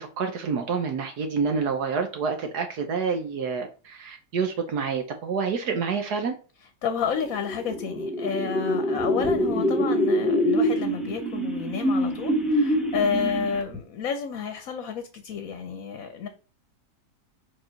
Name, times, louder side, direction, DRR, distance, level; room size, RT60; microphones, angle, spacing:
voice 1, 0.0-6.4, right 5 dB, 70° right, 1.5 m, -28 dB
voice 2, 6.8-16.3, left 6 dB, 60° left, 1.2 m, -30 dB
sound 1, 7.3-13.8, equal, ahead, 1.0 m, -25 dB
4.8 x 4.6 x 5.8 m
omnidirectional pair, 1.8 m